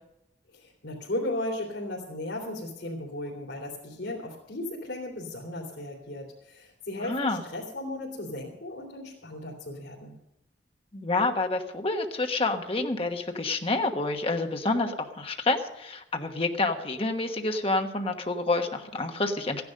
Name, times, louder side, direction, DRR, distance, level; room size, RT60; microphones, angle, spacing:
voice 1, 0.5-10.1, left 1 dB, 85° left, -4 dB, 2.9 m, -36 dB
voice 2, 7.0-7.4 10.9-19.6, left 2 dB, 30° left, 4 dB, 1.2 m, -28 dB
14.5 x 10.5 x 6.5 m, 0.85 s
head